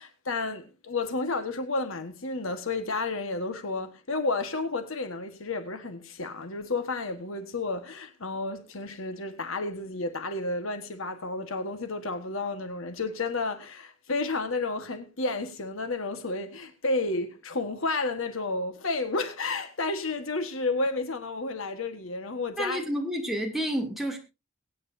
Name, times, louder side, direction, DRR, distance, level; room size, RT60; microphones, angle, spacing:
voice 1, 0.0-22.8, left 3 dB, 65° left, 1.5 m, -31 dB
voice 2, 22.6-24.2, equal, ahead, 2.6 m, -29 dB
22.5 x 9.4 x 2.7 m
head